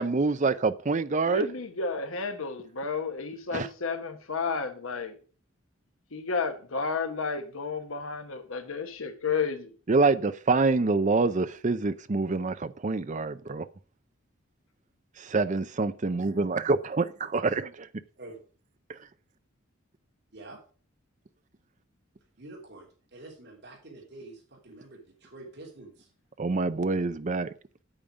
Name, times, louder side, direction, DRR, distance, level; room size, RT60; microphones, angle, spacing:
voice 1, 0.0-1.5 3.5-3.7 9.9-13.7 15.2-17.9 26.4-27.5, right 3 dB, 35° right, 0.6 m, -26 dB
voice 2, 1.3-5.2 6.1-9.7, left 5 dB, 90° left, 1.2 m, -32 dB
voice 3, 22.4-26.1, right 2 dB, 55° right, 3.4 m, -47 dB
8.9 x 8.6 x 5.1 m
head